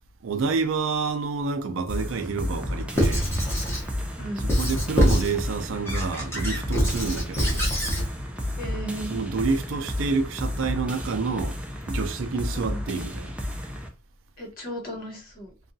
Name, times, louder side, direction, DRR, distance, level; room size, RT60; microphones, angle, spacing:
voice 1, 0.2-3.3 4.4-7.6 9.1-11.6 11.9-13.3, right 4 dB, 75° right, 0.4 m, -28 dB
sound 1, 1.9-13.9, left 1 dB, 5° right, 0.3 m, -32 dB
Squeak / Writing, 2.9-3.9 4.5-5.4 5.9-8.1, equal, 10° left, 0.7 m, -24 dB
voice 2, 4.2-4.5 7.3-7.5 8.6-9.2 12.5-12.8 14.4-15.5, right 1 dB, 45° left, 0.9 m, -35 dB
2.7 x 2.3 x 2.6 m
head